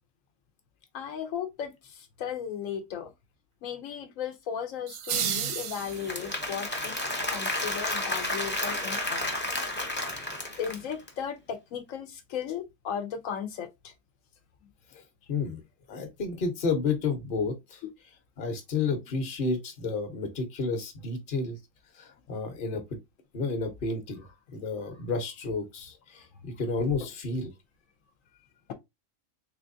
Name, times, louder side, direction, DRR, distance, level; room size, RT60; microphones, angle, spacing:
voice 1, 0.9-3.1 3.6-7.0 7.3-9.3 10.6-13.9, left 8 dB, 80° left, 1.0 m, -36 dB
sound 1, 4.9-6.5, right 8 dB, 90° right, 1.1 m, -32 dB
Applause / Crowd, 5.8-11.1, left 1 dB, 15° left, 0.5 m, -32 dB
voice 2, 9.9-10.4 14.9-15.0 15.3-15.6 15.9-17.8 18.4-21.6 21.9-22.8 23.3-27.5, left 4 dB, 45° left, 1.0 m, -31 dB
3.4 x 3.3 x 2.5 m
omnidirectional pair, 1.3 m